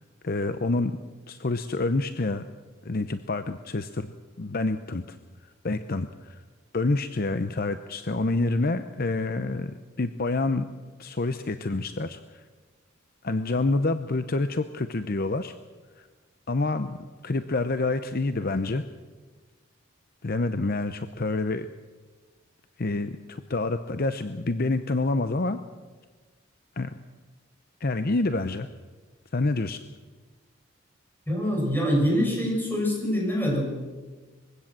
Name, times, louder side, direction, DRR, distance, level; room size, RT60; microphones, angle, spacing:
voice 1, 0.2-1.0 1.3-2.4 2.8-4.1 4.4-5.2 5.6-6.4 6.7-10.7 11.0-12.4 13.2-15.5 16.0-16.1 16.5-17.0 17.2-18.8 20.2-21.7 22.8-25.6 26.8-26.9 27.8-28.7 29.3-29.8, left 2 dB, 45° left, 10 dB, 0.7 m, -27 dB
voice 2, 31.3-33.8, equal, 10° left, -2 dB, 6.8 m, -25 dB
22.0 x 16.5 x 7.5 m, 1.4 s
head